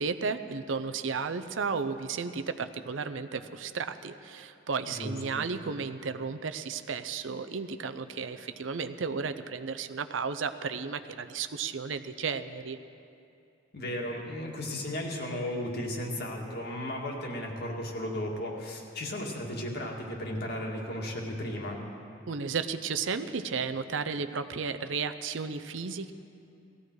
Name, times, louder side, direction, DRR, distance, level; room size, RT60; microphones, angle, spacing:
voice 1, 0.0-12.8 22.3-26.1, right 5 dB, 80° right, 10 dB, 0.6 m, -33 dB
voice 2, 4.9-5.5 13.7-21.8, left 1 dB, 60° left, 0 dB, 2.1 m, -35 dB
17.5 x 14.5 x 4.7 m, 2.6 s
head